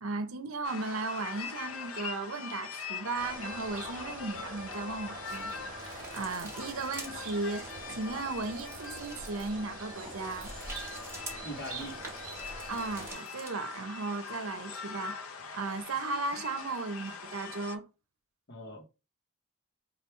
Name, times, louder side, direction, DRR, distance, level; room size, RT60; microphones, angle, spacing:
voice 1, 0.0-5.5 5.8-10.5 12.7-17.8, right 3 dB, 75° right, 0.7 m, -36 dB
sound 1, 0.6-17.8, left 5 dB, 75° left, 0.7 m, -43 dB
sound 2, 3.1-13.1, right 2 dB, 45° right, 1.4 m, -45 dB
sound 3, 5.2-13.5, right 2 dB, 10° right, 1.4 m, -48 dB
voice 2, 11.4-12.0 18.5-18.8, right 1 dB, 55° left, 1.0 m, -41 dB
3.4 x 2.4 x 4.4 m
head